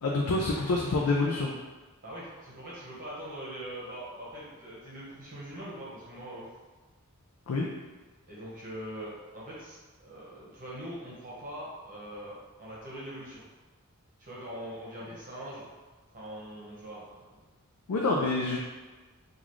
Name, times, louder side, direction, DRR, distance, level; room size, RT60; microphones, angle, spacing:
voice 1, 0.0-1.5 7.5-7.7 17.9-18.6, left 3 dB, 85° left, -2 dB, 0.4 m, -27 dB
voice 2, 2.0-6.5 8.3-13.4 14.2-15.7 16.1-17.4 18.2-18.6, right 1 dB, 40° right, -7 dB, 1.0 m, -42 dB
3.9 x 2.4 x 3.1 m, 1.3 s
head